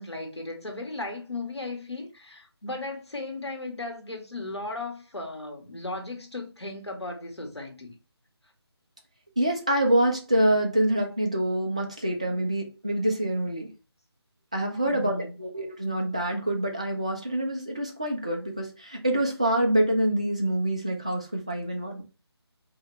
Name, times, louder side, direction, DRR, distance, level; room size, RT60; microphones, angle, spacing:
voice 1, 0.0-7.9 14.8-15.4, left 2 dB, 75° left, 1.5 m, -36 dB
voice 2, 9.4-13.7 14.5-22.0, right 1 dB, 15° right, 0.3 m, -26 dB
4.3 x 2.8 x 3.1 m
figure-of-eight pair, 155°, 14 cm